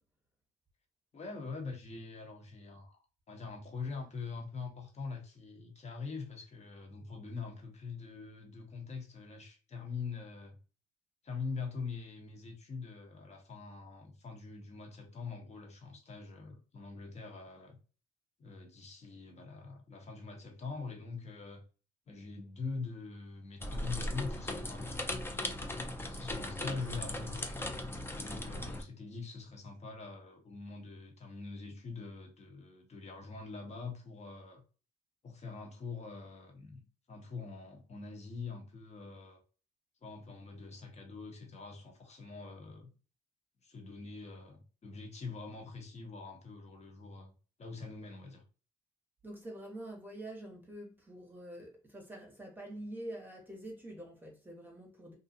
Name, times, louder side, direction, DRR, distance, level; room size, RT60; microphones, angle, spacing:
voice 1, 1.1-3.0 3.3-10.6 11.2-17.8 18.4-21.6 22.1-25.5 26.1-27.6 27.9-34.6 35.2-36.8 37.1-39.4 40.0-42.9 43.6-47.3 47.6-48.4, left 4 dB, 40° left, 1.0 m, -44 dB
sound 1, 23.6-28.8, left 1 dB, 15° left, 0.5 m, -38 dB
voice 2, 49.2-55.1, right 1 dB, 10° right, 0.9 m, -46 dB
2.5 x 2.3 x 2.7 m
supercardioid pair, 70°, 18 cm